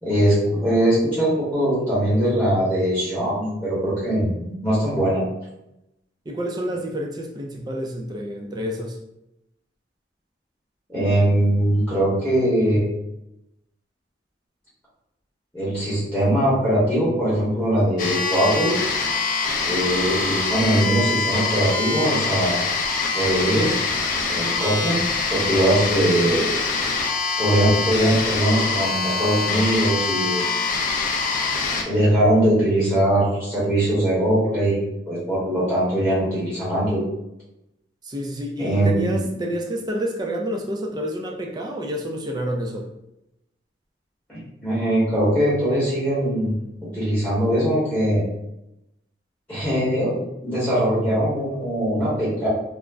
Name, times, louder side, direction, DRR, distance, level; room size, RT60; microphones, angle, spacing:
voice 1, 0.0-5.2 10.9-12.8 15.5-18.7 19.6-22.6 23.1-23.8 24.3-25.0 25.3-26.5 27.4-30.4 31.8-37.0 38.6-39.2 44.3-46.6 46.9-48.2 49.5-50.2 50.4-52.5, right 1 dB, 5° left, -9 dB, 0.9 m, -21 dB
voice 2, 6.3-9.0 38.0-42.9, equal, 25° right, 2 dB, 0.3 m, -28 dB
sound 1, 18.0-31.8, left 4 dB, 50° left, 0.4 m, -24 dB
2.4 x 2.0 x 3.3 m, 0.88 s
head